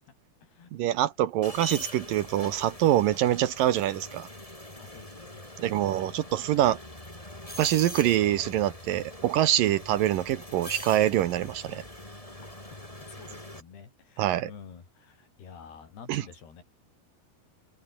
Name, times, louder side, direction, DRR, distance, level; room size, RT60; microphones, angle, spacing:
voice 1, 0.7-4.3 5.6-6.8 7.6-11.8 14.2-14.5 16.1-16.2, right 13 dB, 70° right, 2.4 m, -25 dB
sound 1, 1.4-13.6, left 1 dB, 10° left, 4.5 m, -43 dB
voice 2, 4.8-6.4 12.4-12.5 13.1-16.6, left 6 dB, 85° left, 6.7 m, -50 dB
omnidirectional pair, 4.5 m